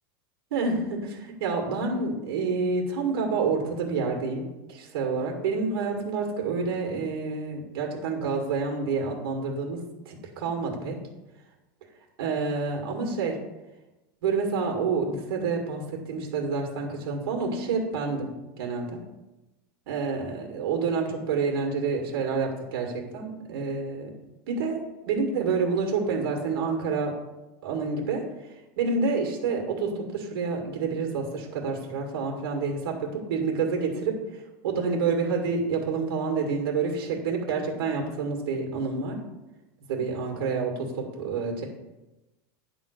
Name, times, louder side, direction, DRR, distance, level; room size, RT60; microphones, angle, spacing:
voice 1, 0.5-11.0 12.2-13.4 14.2-18.3 18.6-19.0 19.9-24.1 24.5-27.2 27.6-39.2 39.9-41.6, right 4 dB, 85° right, 1 dB, 1.9 m, -28 dB
10.5 x 3.8 x 6.4 m, 1.0 s
supercardioid pair, 170°, 12 cm